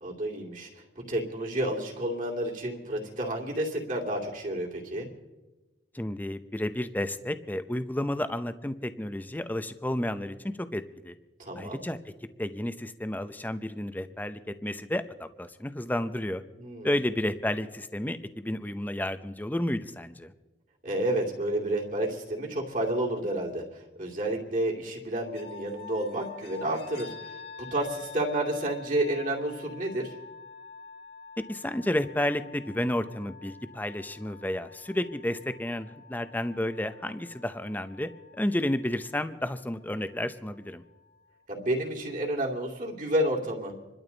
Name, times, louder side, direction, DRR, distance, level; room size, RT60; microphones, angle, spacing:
voice 1, 0.0-5.1 11.4-11.8 16.6-16.9 20.8-27.3 27.7-30.1 41.5-43.7, right 1 dB, 50° right, -2 dB, 2.7 m, -30 dB
voice 2, 5.9-11.1 11.6-12.0 12.4-16.4 16.8-20.3 31.4-38.1 38.4-40.8, left 1 dB, 10° left, 11 dB, 0.7 m, -31 dB
sound 1, 25.3-41.3, left 4 dB, 60° left, 2.0 m, -48 dB
27.0 x 12.5 x 4.0 m, 1.1 s
head